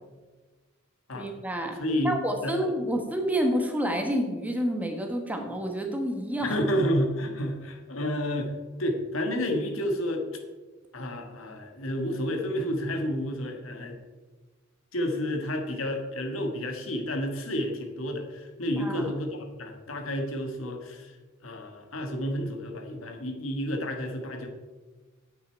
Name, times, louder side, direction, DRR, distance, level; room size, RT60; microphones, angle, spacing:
voice 1, 1.1-1.8 2.0-6.6 18.8-19.1, equal, 10° right, 3 dB, 1.2 m, -29 dB
voice 2, 1.8-2.6 6.4-8.5 8.8-10.3 10.9-14.0 14.9-21.2 21.4-24.5, equal, 80° left, 3 dB, 1.6 m, -30 dB
9.5 x 8.5 x 4.5 m, 1.3 s
head